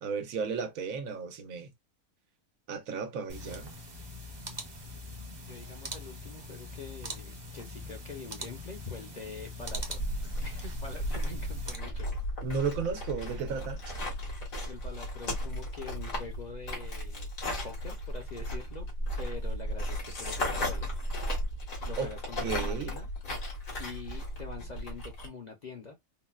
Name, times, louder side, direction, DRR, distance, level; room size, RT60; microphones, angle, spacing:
voice 1, 0.0-1.7 2.7-3.7 12.4-13.8 22.0-22.1 22.4-22.9, right 5 dB, 85° right, 1.1 m, -34 dB
sound 1, 3.3-11.8, left 1 dB, 30° right, 0.5 m, -43 dB
voice 2, 5.4-10.0 10.4-12.1 14.6-17.3 17.6-18.9 19.2-20.9 21.8-23.1 23.8-26.0, left 4 dB, 45° left, 0.6 m, -44 dB
sound 2, 9.7-25.3, equal, 80° left, 1.9 m, -35 dB
3.9 x 2.1 x 2.3 m
omnidirectional pair, 1.4 m